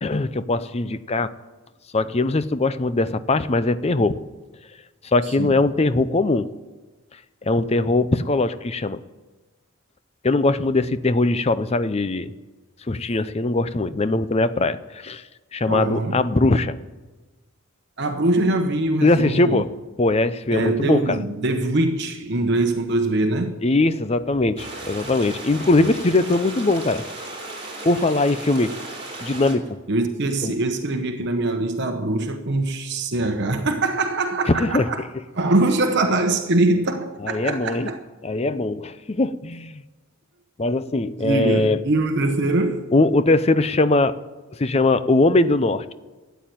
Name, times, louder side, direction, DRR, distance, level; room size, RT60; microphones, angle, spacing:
voice 1, 0.0-1.3 1.9-4.2 5.0-6.5 7.4-9.0 10.2-12.3 12.9-15.2 15.5-16.8 19.0-19.7 20.0-21.2 23.6-27.0 27.8-28.7 29.2-29.8 30.4-30.5 34.5-34.9 37.2-37.9 38.2-39.8 40.6-41.8 42.9-44.2 44.6-45.9, left 2 dB, 30° left, 0.6 m, -21 dB
voice 2, 5.2-5.6 15.7-16.2 18.0-19.6 20.5-23.6 29.9-35.0 35.3-38.0 41.2-42.9, right 2 dB, 55° right, 1.0 m, -23 dB
sound 1, 24.6-29.5, right 2 dB, 30° right, 3.2 m, -35 dB
13.0 x 9.3 x 9.2 m
head